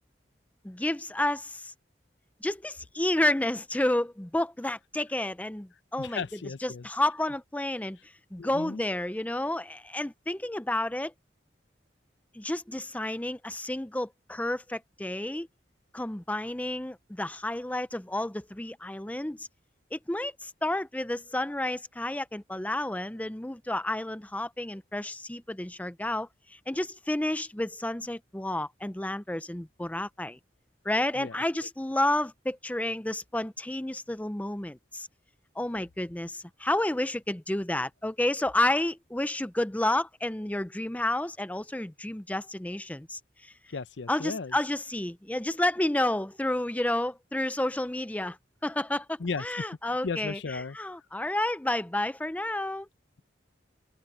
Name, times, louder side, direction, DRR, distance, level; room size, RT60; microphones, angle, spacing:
voice 1, 0.6-1.7 2.4-6.2 6.6-11.1 12.3-15.5 15.9-19.5 19.9-30.4 30.8-35.1 35.6-43.5 44.1-48.4 48.6-52.9, left 1 dB, 10° left, 0.5 m, -30 dB
voice 2, 6.0-6.9 8.4-8.8 31.2-31.4 43.7-44.5 49.2-49.4 50.0-50.8, left 4 dB, 80° left, 0.7 m, -35 dB
open air
head